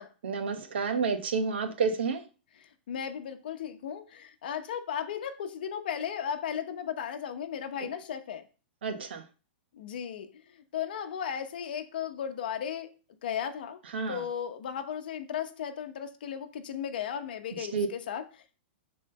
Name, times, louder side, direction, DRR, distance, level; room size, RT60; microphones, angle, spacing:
voice 1, 0.2-2.2 7.8-7.9 8.8-9.2 13.9-14.2 17.6-17.9, right 5 dB, 80° right, 1.2 m, -30 dB
voice 2, 2.6-8.4 9.7-12.9 13.2-13.8 14.1-18.4, left 8 dB, 55° left, 0.9 m, -36 dB
5.6 x 3.8 x 5.3 m
supercardioid pair, 180°, 6 cm